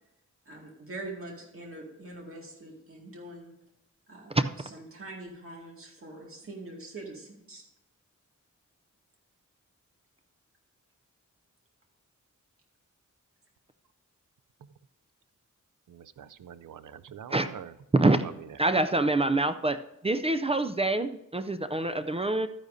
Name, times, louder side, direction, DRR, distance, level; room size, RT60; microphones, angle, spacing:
voice 1, 0.5-3.5 4.1-4.4 4.7-7.6, right 2 dB, 45° right, -1 dB, 2.1 m, -43 dB
voice 2, 15.9-17.8 18.2-18.6, right 9 dB, 80° right, 15 dB, 0.5 m, -45 dB
voice 3, 18.6-19.8 20.0-22.5, right 2 dB, 20° right, 10 dB, 0.4 m, -25 dB
12.0 x 9.9 x 2.7 m, 0.89 s
wide cardioid pair, 150°, 31 cm